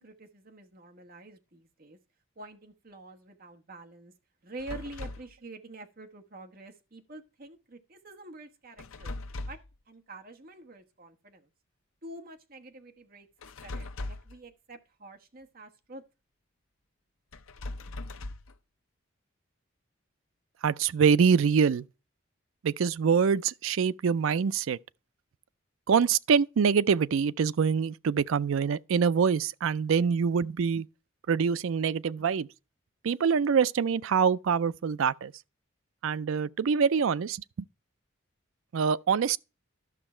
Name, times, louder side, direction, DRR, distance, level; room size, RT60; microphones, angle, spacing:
voice 1, 0.0-2.0 2.4-4.1 4.4-9.1 9.5-9.6 9.9-11.5 12.0-13.3 13.6-16.0, right 2 dB, 45° right, 1.2 m, -47 dB
sound 1, 4.6-5.3 8.8-9.7 13.4-14.4 17.3-18.5, left 2 dB, 80° left, 0.7 m, -39 dB
voice 2, 20.6-21.8 22.6-24.8 25.9-30.9 31.3-32.5 33.0-35.3 36.0-37.4 38.7-39.4, right 6 dB, 75° right, 0.4 m, -25 dB
12.0 x 6.2 x 4.3 m
head